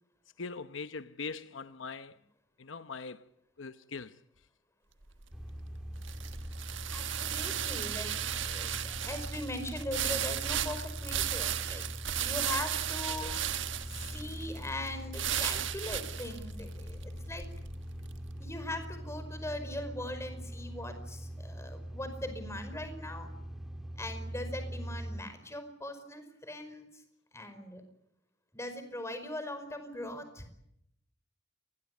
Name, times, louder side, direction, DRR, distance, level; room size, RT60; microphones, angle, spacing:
voice 1, 0.4-2.2 2.6-3.3 3.6-4.2, left 4 dB, 80° left, 1.0 m, -41 dB
sound 1, 5.0-18.3, right 10 dB, 75° right, 1.4 m, -36 dB
sound 2, 5.3-25.2, equal, ahead, 2.2 m, -42 dB
voice 2, 6.9-11.8 12.1-13.3 13.8-17.5 18.4-23.3 24.0-27.0 27.3-27.8 28.5-30.5, left 1 dB, 15° left, 5.2 m, -40 dB
28.0 x 22.0 x 8.4 m
head